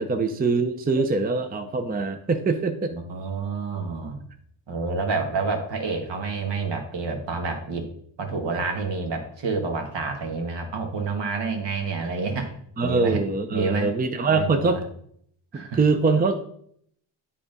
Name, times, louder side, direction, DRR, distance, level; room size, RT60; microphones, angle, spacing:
voice 1, 0.0-2.9 12.8-14.8 15.5-16.4, right 3 dB, 20° right, 8 dB, 0.6 m, -23 dB
voice 2, 2.9-4.2 4.7-7.9 8.2-12.5 12.8-13.2 13.5-13.9 14.3-14.8 15.5-15.8, right 4 dB, 60° right, 4 dB, 1.7 m, -28 dB
8.6 x 3.7 x 5.3 m, 0.67 s
cardioid pair, 90°, 47 cm